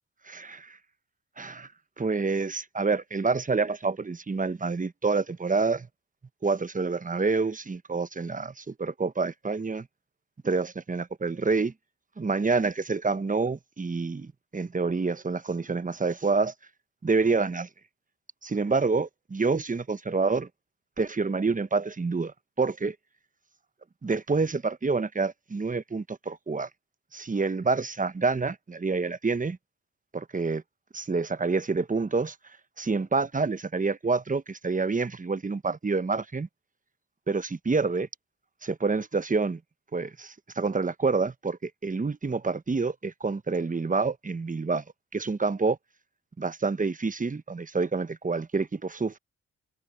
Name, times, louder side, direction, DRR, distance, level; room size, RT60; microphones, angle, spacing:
voice 1, 1.4-1.7 2.0-5.9 6.4-9.9 10.4-11.7 12.2-16.5 17.0-17.7 18.4-20.5 21.0-22.9 24.0-26.7 27.1-29.6 30.1-30.6 30.9-32.3 32.8-36.5 37.3-38.1 38.6-39.6 39.9-44.8 45.1-45.8 46.4-49.2, right 4 dB, 25° right, 1.1 m, -27 dB
supercardioid pair, 50°, 32 cm